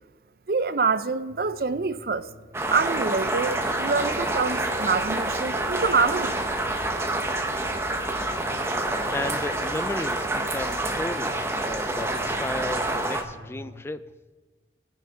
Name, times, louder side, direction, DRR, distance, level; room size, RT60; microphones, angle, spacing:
voice 1, 0.5-2.3 2.7-6.4, right 4 dB, 55° right, 0.5 m, -25 dB
sound 1, 1.3-13.8, equal, 80° right, 1.3 m, -47 dB
sound 2, 2.5-13.2, right 2 dB, 15° right, 0.8 m, -27 dB
voice 2, 9.1-14.0, left 2 dB, 15° left, 0.4 m, -34 dB
19.0 x 6.4 x 4.8 m
head